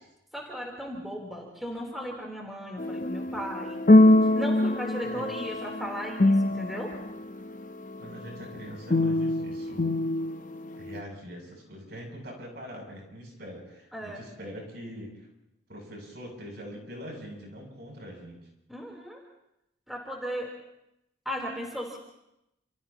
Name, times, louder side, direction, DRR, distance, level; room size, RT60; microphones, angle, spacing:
voice 1, 0.3-3.8 4.4-6.9 13.9-14.2 18.7-19.2 19.9-20.5 21.3-22.0, equal, ahead, -2 dB, 3.6 m, -36 dB
sound 1, 2.8-7.1 8.9-11.0, left 1 dB, 45° left, 0.8 m, -23 dB
voice 2, 8.0-10.0 10.8-15.3 15.7-18.4, equal, 60° right, 0 dB, 7.8 m, -43 dB
30.0 x 29.0 x 3.0 m, 0.85 s
head